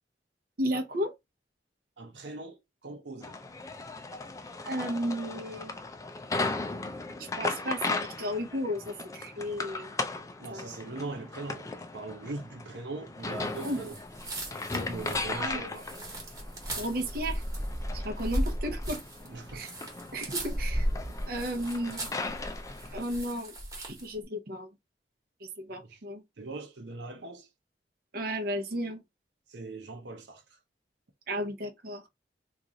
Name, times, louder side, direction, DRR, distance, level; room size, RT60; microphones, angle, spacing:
voice 1, 0.6-1.1 4.6-5.8 7.2-9.9 10.5-10.7 13.6-13.8 15.3-15.7 16.8-17.4 17.9-19.0 19.5-19.7 20.1-20.9 21.3-22.1 22.9-24.7 25.4-26.2 28.1-29.0 31.3-32.0, equal, 55° right, 0.8 m, -34 dB
voice 2, 2.0-3.4 10.4-14.0 14.7-16.0 19.2-19.7 21.1-21.2 25.7-26.0 26.4-27.5 29.5-30.4, right 3 dB, 85° right, 0.8 m, -41 dB
sound 1, 3.2-23.0, left 3 dB, 20° left, 0.4 m, -37 dB
sound 2, 13.5-24.1, equal, 20° right, 1.2 m, -36 dB
3.0 x 2.5 x 3.8 m
head